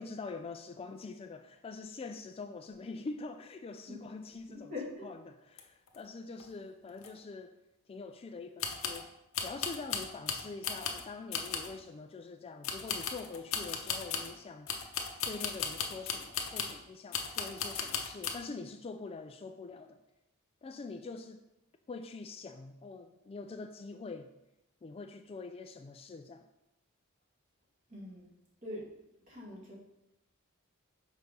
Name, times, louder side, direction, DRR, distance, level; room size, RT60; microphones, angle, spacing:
voice 1, 0.0-4.7 5.0-7.5 7.9-9.1 9.4-14.7 15.2-20.0 20.6-21.4 21.9-24.3 24.8-26.5, left 3 dB, 25° left, 7 dB, 0.3 m, -44 dB
voice 2, 4.7-5.1 27.9-28.3 28.6-28.9 29.3-29.7, left 2 dB, 40° right, -5 dB, 2.2 m, -42 dB
sound 1, 5.6-5.7 5.9-6.0 6.4-6.5 7.0-7.1 8.6-9.0 9.3-11.0 11.3-11.8 12.6-14.3 14.7-16.8 17.1-18.4, left 6 dB, 65° left, 0.8 m, -36 dB
6.4 x 4.1 x 5.2 m, 0.89 s
head